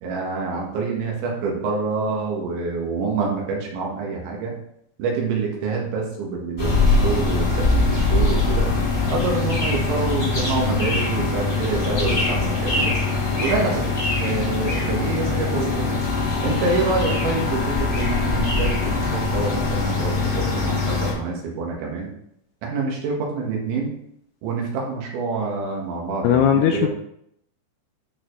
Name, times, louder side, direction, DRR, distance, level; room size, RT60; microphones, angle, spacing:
voice 1, 0.0-4.5 5.0-8.7 9.1-13.0 13.4-13.8 14.2-16.0 16.4-22.1 22.6-23.9 24.4-26.9, right 4 dB, 85° right, -1 dB, 4.0 m, -27 dB
sound 1, 6.6-21.1, left 3 dB, 45° left, 0.6 m, -22 dB
voice 2, 26.2-26.9, left 9 dB, 85° left, 4 dB, 2.4 m, -17 dB
11.5 x 4.6 x 3.2 m, 0.74 s
omnidirectional pair, 5.1 m